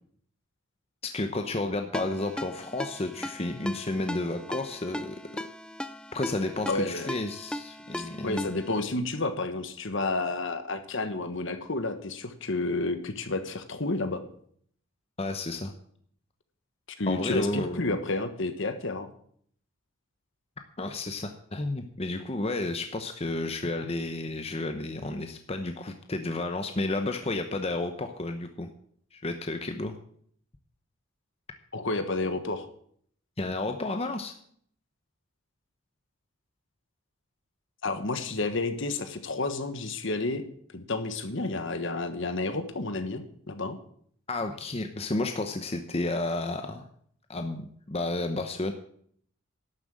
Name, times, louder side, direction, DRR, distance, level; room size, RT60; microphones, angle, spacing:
voice 1, 1.0-5.4 6.1-8.5 15.2-15.7 17.1-18.0 20.8-28.7 29.1-29.9 33.4-34.3 44.3-46.8 47.3-48.7, left 2 dB, 30° left, 6 dB, 0.8 m, -32 dB
Ringtone, 1.9-8.8, left 1 dB, 5° left, 0.4 m, -38 dB
voice 2, 6.7-7.1 8.0-14.2 17.0-19.1 31.7-32.7 37.8-40.4 40.7-43.8, left 2 dB, 60° left, 9 dB, 1.4 m, -30 dB
11.5 x 7.5 x 7.6 m, 0.62 s
head